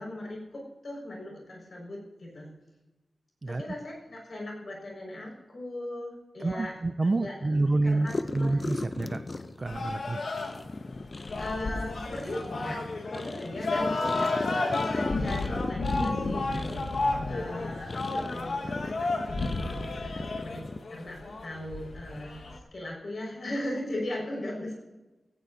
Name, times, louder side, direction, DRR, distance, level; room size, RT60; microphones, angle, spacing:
voice 1, 0.0-2.5 3.5-6.7 7.0-8.6 11.4-22.4 22.7-24.7, left 1 dB, 55° left, -2 dB, 5.3 m, -38 dB
voice 2, 6.4-9.2 9.6-10.2, right 2 dB, 35° right, 10 dB, 0.4 m, -28 dB
sound 1, 8.0-20.8, left 3 dB, 35° left, 0.6 m, -37 dB
sound 2, 9.7-22.6, left 2 dB, 75° left, 1.5 m, -32 dB
17.0 x 16.5 x 2.8 m, 1.1 s
wide cardioid pair, 120°, 0 cm